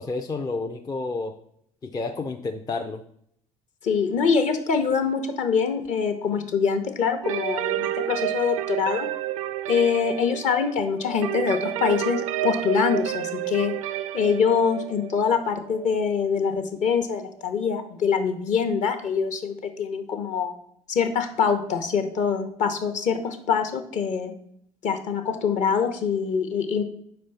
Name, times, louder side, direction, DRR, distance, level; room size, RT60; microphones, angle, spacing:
voice 1, 0.0-1.4 1.8-3.0, left 3 dB, 20° left, 4 dB, 0.5 m, -30 dB
voice 2, 3.8-9.1 9.7-13.7 14.1-20.6 20.9-24.3 24.8-26.8, left 6 dB, 45° left, 7 dB, 0.9 m, -24 dB
sound 1, 7.2-16.9, right 13 dB, 70° right, 0.4 m, -30 dB
4.9 x 4.3 x 5.5 m, 0.69 s
figure-of-eight pair, 55°, 18 cm